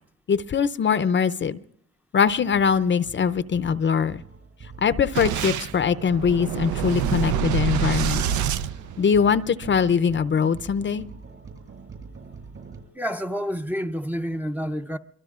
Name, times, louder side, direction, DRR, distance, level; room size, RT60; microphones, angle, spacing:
voice 1, 0.3-1.6 2.1-4.2 4.8-8.2 9.0-11.1, left 6 dB, 40° left, 0.6 m, -22 dB
sound 1, 2.3-12.8, right 4 dB, 50° right, 6.4 m, -44 dB
Boom, 5.1-9.5, right 9 dB, 75° right, 0.6 m, -26 dB
voice 2, 12.9-15.0, equal, 5° right, 0.6 m, -29 dB
25.5 x 23.0 x 2.4 m
cardioid pair, 90°, 30 cm